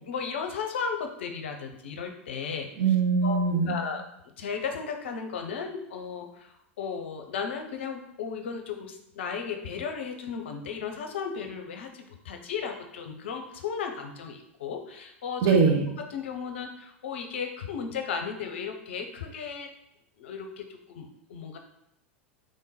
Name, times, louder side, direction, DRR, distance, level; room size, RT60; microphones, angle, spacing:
voice 1, 0.1-2.7 3.2-4.0 4.4-15.6 15.9-19.7 20.2-21.6, left 6 dB, 60° left, 5 dB, 0.6 m, -35 dB
voice 2, 2.8-3.8 15.4-15.9, right 5 dB, 45° right, 2 dB, 0.9 m, -22 dB
3.6 x 3.2 x 4.2 m, 0.79 s
figure-of-eight pair, 90°, 7 cm